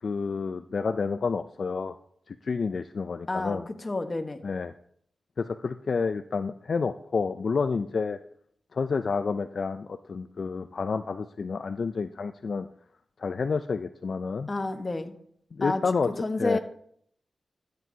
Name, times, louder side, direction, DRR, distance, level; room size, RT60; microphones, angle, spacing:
voice 1, 0.0-1.9 2.3-3.6 4.4-4.7 5.4-8.2 8.7-12.7 13.2-14.5 15.5-16.1 16.4-16.6, left 5 dB, 65° left, 9 dB, 0.4 m, -29 dB
voice 2, 3.3-4.4 14.5-15.2 15.6-16.6, left 2 dB, 40° left, 7 dB, 1.1 m, -30 dB
13.5 x 7.9 x 2.8 m, 0.65 s
cardioid pair, 50°, 0 cm